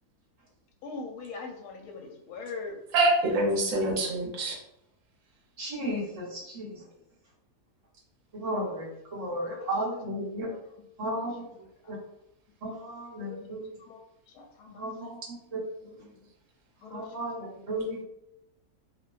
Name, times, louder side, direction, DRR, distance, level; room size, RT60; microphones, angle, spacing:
voice 1, 0.8-2.8 9.5-9.7 13.9-14.0 14.4-14.8 16.8-17.0, left 4 dB, 80° left, 2 dB, 1.1 m, -40 dB
voice 2, 2.9-4.6, right 2 dB, 65° right, -2 dB, 1.0 m, -25 dB
voice 3, 5.6-6.8 8.3-10.5 11.0-11.5 11.9-12.0 12.6-13.7 14.7-16.1 16.9-18.0, right 1 dB, 35° right, -6 dB, 0.6 m, -34 dB
2.7 x 2.2 x 2.3 m, 0.81 s
omnidirectional pair, 1.6 m